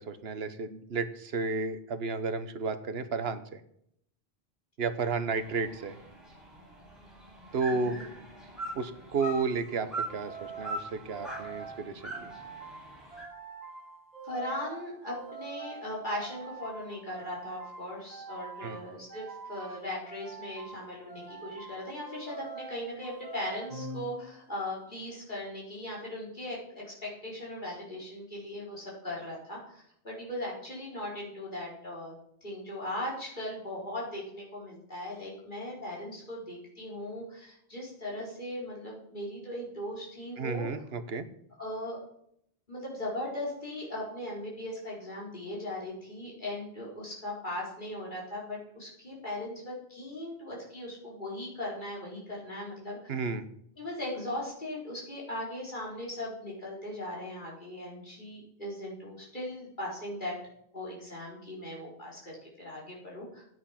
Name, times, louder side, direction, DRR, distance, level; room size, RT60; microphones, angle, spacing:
voice 1, 0.0-3.6 4.8-6.0 7.5-8.0 8.8-12.3 18.6-18.8 40.4-41.2 53.1-53.5, right 4 dB, 75° right, 11 dB, 1.2 m, -32 dB
sound 1, 5.3-13.2, right 1 dB, ahead, 4.4 m, -42 dB
voice 2, 7.7-8.0 14.2-32.1 32.4-40.7 41.6-42.0 42.7-53.1 53.8-60.4 60.7-63.4, left 1 dB, 50° left, -5 dB, 4.6 m, -38 dB
sound 2, 10.1-24.6, right 5 dB, 40° right, 2.0 m, -45 dB
13.0 x 9.4 x 5.8 m, 0.73 s
omnidirectional pair, 1.0 m